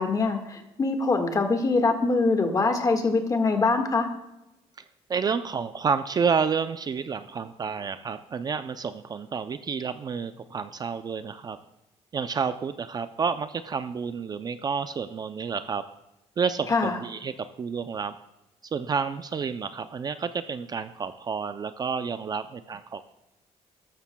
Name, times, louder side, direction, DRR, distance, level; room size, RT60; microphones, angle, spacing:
voice 1, 0.0-4.1 16.7-17.0, left 3 dB, 30° left, 5 dB, 1.6 m, -23 dB
voice 2, 5.1-11.6 12.1-15.8 16.4-18.2 18.7-23.1, right 6 dB, 35° right, 11 dB, 0.4 m, -30 dB
13.5 x 12.5 x 2.2 m, 0.92 s
cardioid pair, 125°, 12 cm